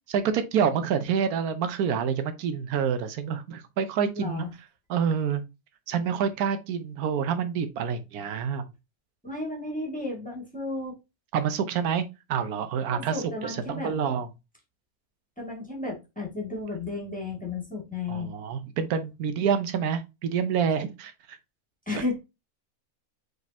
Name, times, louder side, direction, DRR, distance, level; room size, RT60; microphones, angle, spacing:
voice 1, 0.1-4.5 4.9-5.4 5.9-8.6 11.3-14.3 18.1-21.4, right 7 dB, 85° right, 1.2 m, -27 dB
voice 2, 4.2-4.5 9.2-10.9 12.9-13.9 15.4-18.3 21.9-22.2, left 3 dB, 5° left, 1.8 m, -33 dB
4.9 x 4.0 x 2.7 m
omnidirectional pair, 1.5 m